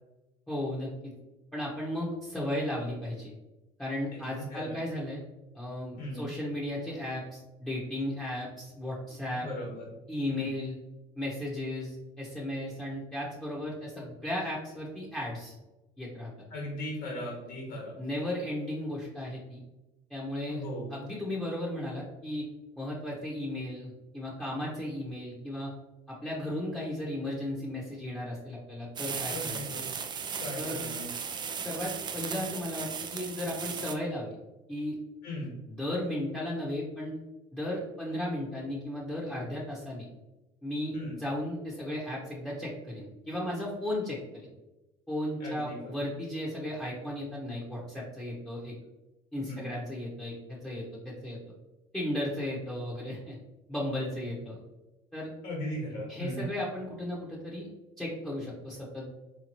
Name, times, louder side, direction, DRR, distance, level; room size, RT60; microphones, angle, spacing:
voice 1, 0.5-1.1 1.5-3.3 3.8-5.2 5.5-9.5 10.1-10.8 11.2-15.5 16.0-16.3 18.0-19.6 20.1-20.6 20.9-22.4 22.8-25.7 26.1-29.6 30.6-30.8 31.6-34.3 34.7-35.0 35.7-37.1 37.5-40.1 40.6-44.5 45.1-48.7 49.3-51.4 51.9-53.3 53.7-54.6 55.1-55.3 56.1-57.7 58.0-59.1, left 1 dB, 5° left, -6 dB, 1.0 m, -35 dB
voice 2, 4.1-4.8 6.0-6.3 9.3-9.8 10.3-10.5 16.5-18.0 20.5-20.9 29.3-29.8 30.4-31.1 35.2-35.5 40.9-41.2 45.4-45.9 49.4-49.6 55.4-56.5, equal, 60° left, -3 dB, 1.3 m, -38 dB
sound 1, 29.0-34.0, right 6 dB, 30° right, 0.4 m, -36 dB
3.7 x 2.9 x 2.9 m, 1.0 s
supercardioid pair, 95°, 16 cm